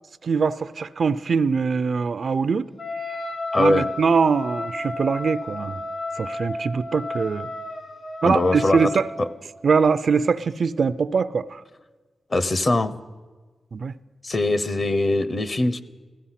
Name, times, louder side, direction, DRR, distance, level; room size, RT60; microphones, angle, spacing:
voice 1, 0.2-2.7 3.6-5.8 6.2-7.5 8.2-9.1 9.6-11.6 13.7-13.9, right 5 dB, 60° right, 0.4 m, -22 dB
Wind instrument woodwind instrument, 2.8-9.4, left 2 dB, 60° left, 2.4 m, -32 dB
voice 2, 3.5-3.9 8.2-8.9 12.3-12.9 14.2-15.8, left 2 dB, 35° left, 0.7 m, -22 dB
16.0 x 14.0 x 5.8 m
wide cardioid pair, 110°, 0 cm